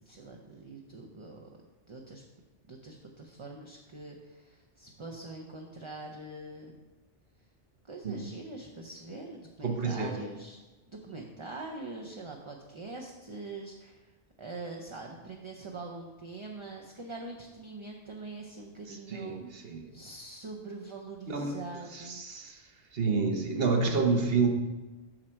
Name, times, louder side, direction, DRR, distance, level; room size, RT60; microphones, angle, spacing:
voice 1, 0.0-1.5 1.9-2.2 2.7-6.8 7.9-10.6 10.9-14.1 14.4-22.2, right 3 dB, 30° right, 1 dB, 0.6 m, -43 dB
voice 2, 9.6-10.1 18.9-19.9 21.3-21.6 21.9-22.6 22.9-24.5, right 4 dB, 55° right, 3 dB, 1.2 m, -29 dB
7.7 x 6.3 x 4.4 m, 1.2 s
omnidirectional pair, 1.2 m